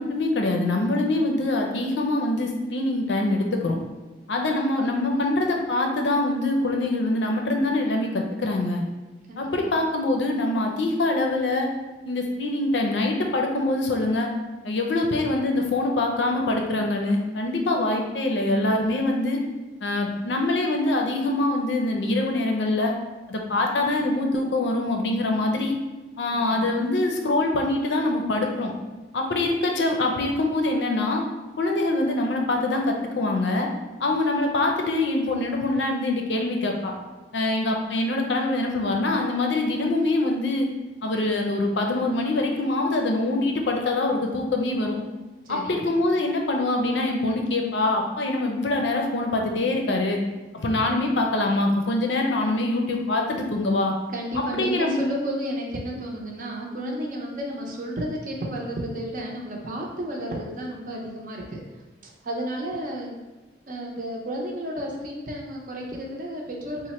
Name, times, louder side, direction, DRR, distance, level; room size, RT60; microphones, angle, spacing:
voice 1, 0.0-3.7 4.3-8.8 9.4-11.7 12.0-14.3 14.6-19.4 19.8-22.9 23.3-25.7 26.2-28.7 29.1-31.2 31.6-33.7 34.0-36.9 37.3-40.7 41.0-45.0 45.5-50.2 50.5-53.9 54.5-55.0, left 2 dB, 85° left, 2 dB, 0.6 m, -24 dB
voice 2, 5.1-5.4 9.3-9.7 26.3-26.7 41.5-41.6 45.5-45.9 50.6-50.9 54.1-61.6 62.2-63.2 63.7-66.9, equal, 50° right, -1 dB, 0.6 m, -32 dB
3.1 x 2.1 x 4.1 m, 1.2 s
head